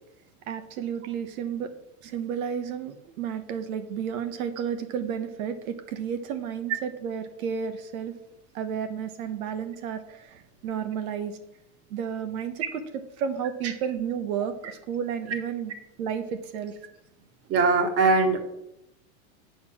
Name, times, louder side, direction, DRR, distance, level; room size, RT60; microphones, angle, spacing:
voice 1, 0.5-1.7 2.0-8.1 8.5-11.4 11.9-12.8 13.2-15.7 16.0-16.8, right 7 dB, 75° right, 8 dB, 1.3 m, -32 dB
voice 2, 17.5-18.4, right 3 dB, 35° right, 6 dB, 1.8 m, -21 dB
8.6 x 7.2 x 6.1 m, 0.84 s
supercardioid pair, 125°, 42 cm